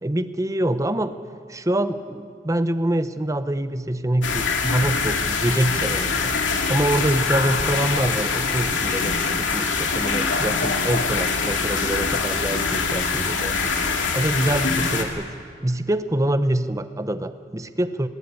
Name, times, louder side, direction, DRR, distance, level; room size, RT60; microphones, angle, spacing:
voice 1, 0.0-1.2 1.5-6.4 6.7-13.6 14.1-15.3 15.6-18.1, right 1 dB, 15° right, 12 dB, 0.8 m, -25 dB
sound 1, 4.2-15.0, left 4 dB, 90° left, 2.4 m, -24 dB
21.5 x 17.0 x 9.5 m, 2.1 s
head